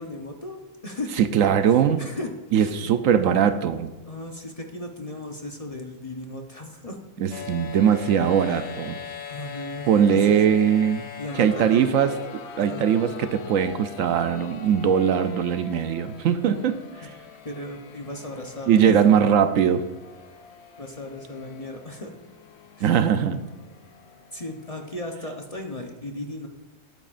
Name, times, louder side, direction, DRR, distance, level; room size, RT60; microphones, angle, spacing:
voice 1, 0.0-1.2 2.0-2.3 2.6-2.9 4.0-7.0 7.3-7.5 9.3-10.6 11.2-12.0 12.6-12.9 16.5-16.7 17.0-17.1 17.4-19.1 20.8-22.1 22.8-22.9 24.3-26.5, left 1 dB, 30° left, 3 dB, 0.9 m, -36 dB
voice 2, 1.2-2.0 2.5-3.9 7.2-9.0 9.9-11.1 11.3-16.8 18.7-19.8 22.8-23.4, right 8 dB, 75° right, 10 dB, 1.0 m, -20 dB
sound 1, 7.3-25.1, left 7 dB, 60° left, 0.9 m, -42 dB
19.5 x 9.0 x 2.5 m, 1.1 s
omnidirectional pair, 1.4 m